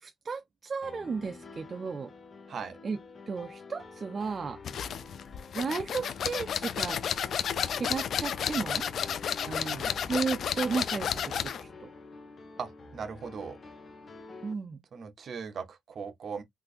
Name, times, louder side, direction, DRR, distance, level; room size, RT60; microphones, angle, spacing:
voice 1, 0.0-2.1 2.8-3.0 3.3-4.6 5.5-7.0 7.7-8.9 10.1-11.9 14.4-14.8, right 5 dB, 35° right, 0.3 m, -34 dB
sound 1, 0.8-14.5, left 4 dB, 40° left, 0.9 m, -48 dB
voice 2, 2.5-2.8 9.4-10.0 12.6-13.6 14.9-16.4, right 5 dB, 55° right, 0.8 m, -39 dB
sound 2, 4.6-11.7, left 8 dB, 65° left, 0.4 m, -32 dB
3.7 x 2.5 x 2.4 m
cardioid pair, 120°, 0 cm